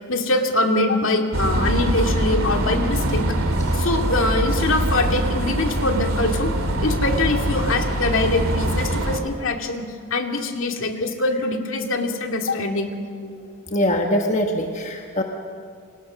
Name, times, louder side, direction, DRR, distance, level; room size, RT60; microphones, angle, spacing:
voice 1, 0.1-3.3 3.7-6.5 6.8-9.8 10.1-13.0, left 2 dB, 60° left, 3 dB, 2.3 m, -23 dB
sound 1, 1.3-9.2, right 1 dB, 70° right, 2.7 m, -23 dB
voice 2, 13.7-15.2, equal, 30° left, 2 dB, 1.5 m, -22 dB
30.0 x 25.5 x 6.3 m, 2.2 s
head